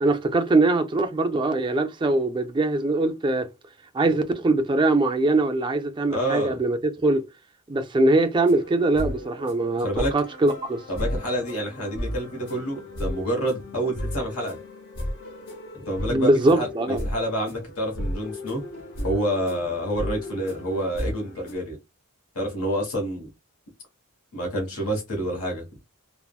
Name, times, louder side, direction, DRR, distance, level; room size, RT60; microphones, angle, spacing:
voice 1, 0.0-3.5 3.9-7.3 7.7-9.9 10.1-10.8 16.1-17.0, right 2 dB, 20° right, 0.3 m, -22 dB
voice 2, 6.1-6.6 9.8-10.1 10.9-14.6 15.7-18.6 19.0-21.8 22.3-23.3 24.3-25.6, equal, 75° left, 1.1 m, -28 dB
sound 1, 8.3-21.5, equal, 55° left, 0.8 m, -34 dB
3.5 x 2.0 x 2.2 m
head